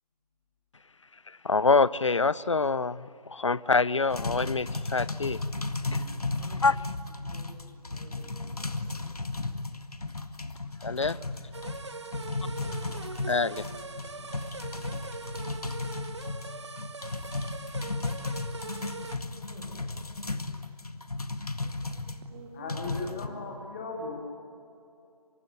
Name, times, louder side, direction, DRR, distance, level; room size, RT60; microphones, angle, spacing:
voice 1, 1.3-5.4 6.6-6.8 10.8-11.2 13.3-13.7, left 4 dB, 50° left, 20 dB, 0.7 m, -25 dB
sound 1, 4.1-22.2 22.7-23.3, left 3 dB, 65° left, 1.9 m, -35 dB
voice 2, 7.3-9.5 12.4-13.4 15.2-15.4 17.9-18.1 19.2-20.0 20.3-20.4 21.2-23.2, right 4 dB, 10° right, 0 dB, 1.4 m, -52 dB
voice 3, 10.9-11.2 14.1-14.3 22.5-24.2, left 3 dB, 20° left, 0 dB, 2.3 m, -38 dB
sound 2, 11.5-19.2, right 4 dB, 45° right, 1.0 m, -42 dB
24.0 x 24.0 x 9.9 m, 2.8 s
figure-of-eight pair, 155°, 21 cm